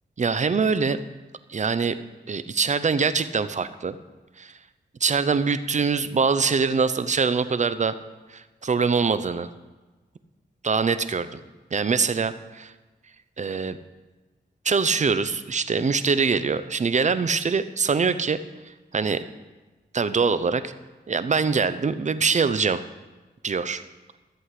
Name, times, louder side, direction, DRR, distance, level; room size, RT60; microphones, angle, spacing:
voice 1, 0.2-1.0 1.5-2.0 2.3-4.0 4.4-4.5 5.0-7.9 8.3-9.5 10.6-11.4 11.7-12.7 13.4-13.8 14.6-18.4 18.9-19.2 19.9-20.7 21.1-22.8 23.4-23.8, right 5 dB, 45° right, 13 dB, 0.7 m, -23 dB
14.0 x 7.8 x 4.9 m, 1.2 s
cardioid pair, 70°, 18 cm